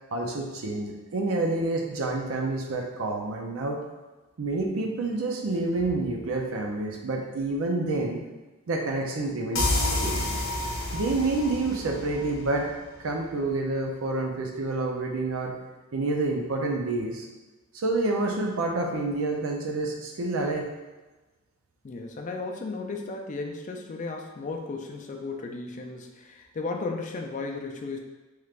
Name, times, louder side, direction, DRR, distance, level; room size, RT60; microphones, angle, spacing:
voice 1, 0.1-3.8 4.4-8.2 8.7-10.2 10.9-12.7 13.0-15.5 15.9-17.2 17.7-20.7, right 2 dB, 80° right, 1 dB, 0.5 m, -28 dB
sound 1, 9.5-13.1, left 2 dB, 70° left, 0.7 m, -29 dB
voice 2, 21.8-28.0, left 3 dB, 35° left, 2 dB, 0.4 m, -35 dB
3.3 x 3.1 x 2.4 m, 1.2 s
head